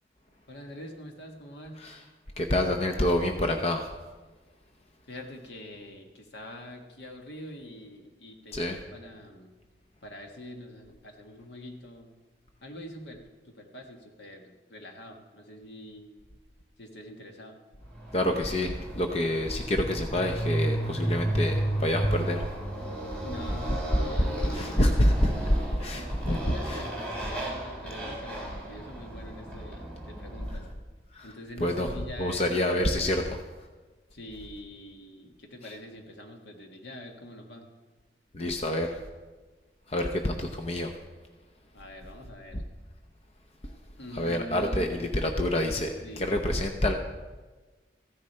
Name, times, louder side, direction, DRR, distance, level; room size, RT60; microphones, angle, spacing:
voice 1, 0.5-1.8 5.1-9.5 10.0-12.1 12.6-16.1 16.8-17.6 23.2-24.8 25.4-25.6 25.9-30.7 31.2-32.9 34.1-37.7 41.7-42.6 44.0-44.9 46.0-46.2, left 1 dB, 80° left, 2 dB, 1.6 m, -44 dB
voice 2, 2.4-3.9 8.5-8.8 18.1-22.4 24.5-25.3 25.8-26.8 31.2-31.3 31.6-31.9 32.2-33.4 38.3-38.9 39.9-40.9 44.1-46.9, left 1 dB, 35° left, 4 dB, 0.7 m, -27 dB
Motorcycle, 17.9-30.6, right 1 dB, 5° left, 3.6 m, -33 dB
15.0 x 9.9 x 4.4 m, 1.3 s
head